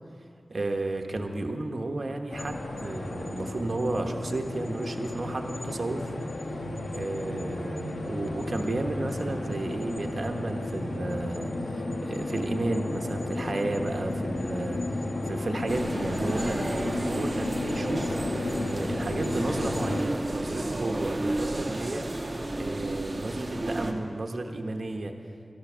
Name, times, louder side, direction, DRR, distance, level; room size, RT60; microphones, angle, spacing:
voice 1, 0.5-6.1 6.9-18.1 18.6-22.1 22.5-25.1, right 2 dB, 60° right, 4 dB, 1.1 m, -33 dB
sound 1, 2.3-20.0, left 2 dB, 85° left, 1.2 m, -33 dB
sound 2, 15.7-23.9, right 1 dB, 40° right, 1.3 m, -32 dB
13.0 x 12.0 x 6.2 m, 2.3 s
cardioid pair, 50°, 0 cm